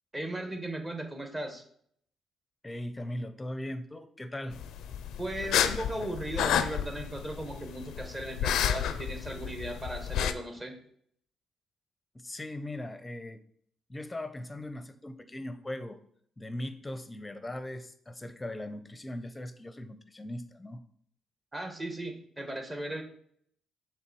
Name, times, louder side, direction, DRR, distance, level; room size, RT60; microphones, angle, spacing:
voice 1, 0.1-1.6 5.2-10.8 21.5-23.0, right 1 dB, 20° right, 4 dB, 1.2 m, -37 dB
voice 2, 2.6-4.6 12.1-13.4 13.9-16.0 16.4-20.8, left 1 dB, 15° left, 11 dB, 0.7 m, -39 dB
sound 1, 4.5-10.3, left 9 dB, 85° left, 0.4 m, -31 dB
6.6 x 3.5 x 4.6 m, 0.64 s
cardioid pair, 90°, 0 cm